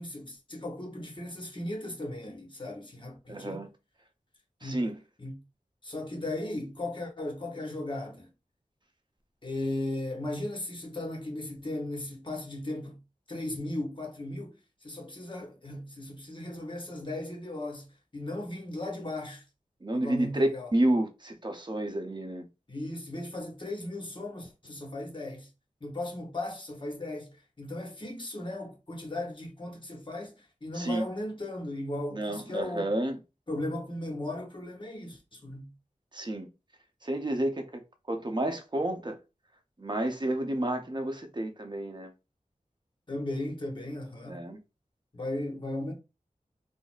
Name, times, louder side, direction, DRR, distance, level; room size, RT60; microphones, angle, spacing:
voice 1, 0.0-3.6 4.6-4.9 5.2-5.4 5.8-8.3 9.4-13.0 13.3-17.9 18.1-19.4 19.9-20.7 22.7-25.5 25.8-32.9 33.5-35.7 43.1-44.4 45.1-45.9, left 1 dB, 35° left, 0.9 m, -36 dB
voice 2, 3.3-3.7 4.6-5.0 19.8-22.5 30.7-31.0 32.1-33.2 36.1-36.5 37.0-37.8 38.1-39.2 39.8-42.1 44.3-44.6, right 1 dB, 35° right, 0.7 m, -30 dB
3.9 x 2.0 x 2.3 m
wide cardioid pair, 60°, 14 cm